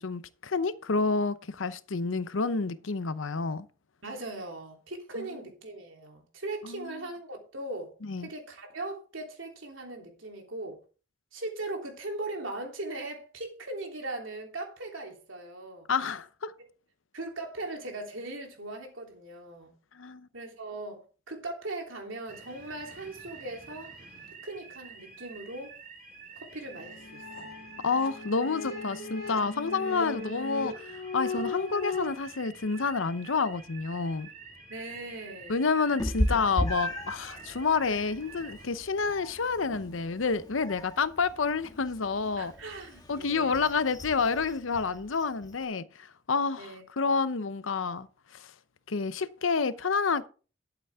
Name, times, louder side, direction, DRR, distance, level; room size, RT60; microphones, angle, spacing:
voice 1, 0.0-3.7 5.2-5.3 6.6-7.0 8.0-8.3 15.9-16.5 19.9-20.3 27.8-34.3 35.5-42.5 43.1-48.1 48.3-48.5 48.9-50.3, left 4 dB, 90° left, 0.8 m, -29 dB
voice 2, 4.0-7.9 8.2-10.8 11.3-15.9 17.1-19.7 20.3-24.0 24.4-25.8 26.4-27.6 34.7-35.6 42.4-43.6 46.6-46.8, right 2 dB, 85° right, 3.2 m, -39 dB
sound 1, 22.3-38.7, right 5 dB, 45° right, 2.6 m, -49 dB
sound 2, 26.7-32.1, left 3 dB, 50° left, 2.4 m, -37 dB
Meow, 36.0-45.6, equal, 20° left, 1.5 m, -37 dB
12.0 x 8.3 x 3.6 m
head